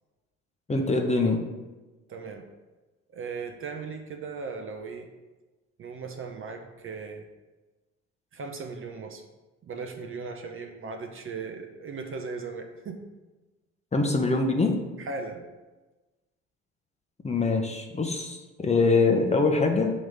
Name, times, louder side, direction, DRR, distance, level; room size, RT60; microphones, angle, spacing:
voice 1, 0.7-1.4 13.9-14.7 17.2-19.9, left 3 dB, 20° left, 3 dB, 0.9 m, -23 dB
voice 2, 2.1-2.5 3.1-5.1 5.8-7.3 8.3-9.2 9.6-13.0 15.0-15.4, right 4 dB, 35° right, 4 dB, 0.7 m, -37 dB
6.3 x 3.1 x 5.0 m, 1.2 s
hypercardioid pair, 55°, 36 cm